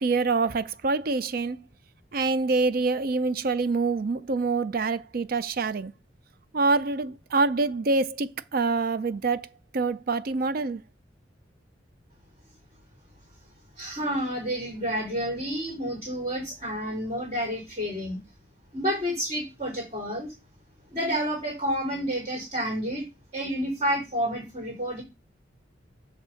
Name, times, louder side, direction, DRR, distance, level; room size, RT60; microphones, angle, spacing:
voice 1, 0.0-1.6 2.1-5.9 6.5-9.5 9.7-10.8, right 3 dB, 50° right, 0.5 m, -26 dB
voice 2, 13.8-18.2 18.7-20.3 20.9-23.0 23.3-25.0, equal, 35° right, 3.5 m, -29 dB
8.0 x 3.6 x 6.4 m
head